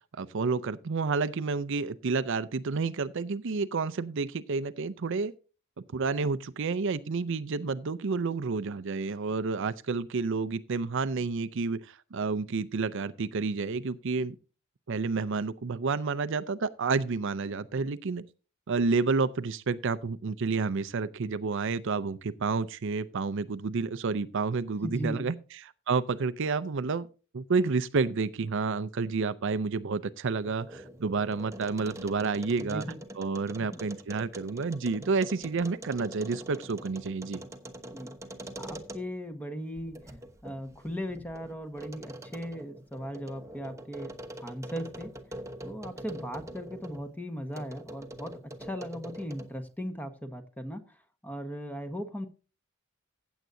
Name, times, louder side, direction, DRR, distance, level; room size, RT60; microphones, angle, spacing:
voice 1, 0.2-5.3 5.9-14.4 14.9-18.2 18.7-25.3 25.9-27.1 27.3-32.8 33.2-37.4, right 4 dB, 65° right, 0.5 m, -30 dB
voice 2, 24.8-25.2 32.6-33.0 33.6-33.8 37.9-38.1 38.6-40.0 40.4-44.1 44.4-45.1 45.6-52.3, equal, 10° left, 1.3 m, -38 dB
Radio case resonant switch slow moves squeaks, 30.3-39.3 39.8-47.1 47.5-49.6, right 1 dB, 15° right, 1.1 m, -44 dB
15.5 x 8.1 x 2.7 m
head